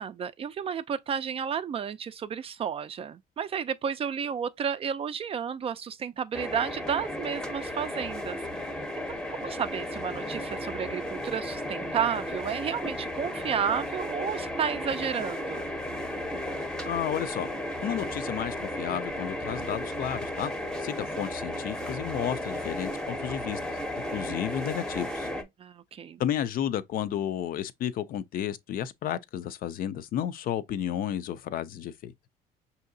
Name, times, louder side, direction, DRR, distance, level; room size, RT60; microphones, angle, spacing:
voice 1, 0.0-8.7 9.1-15.7 25.6-26.2, right 7 dB, 35° right, 0.3 m, -32 dB
sound 1, 6.3-25.4, left 1 dB, 5° left, 0.7 m, -34 dB
voice 2, 16.9-17.5 17.8-20.5 20.8-23.6 24.1-25.3 26.2-32.1, left 10 dB, 60° left, 0.4 m, -32 dB
5.6 x 2.7 x 2.6 m
cardioid pair, 110°, 17 cm